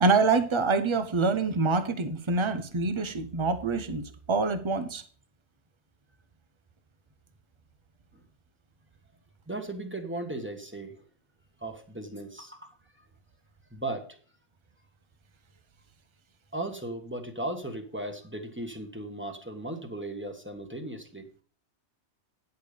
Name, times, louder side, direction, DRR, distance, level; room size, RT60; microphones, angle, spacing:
voice 1, 0.0-5.0, right 3 dB, 30° right, 0.9 m, -26 dB
voice 2, 9.5-11.1 11.6-12.7 13.7-14.1 16.5-21.3, right 1 dB, 10° right, 1.4 m, -36 dB
10.0 x 6.9 x 5.0 m
omnidirectional pair, 1.1 m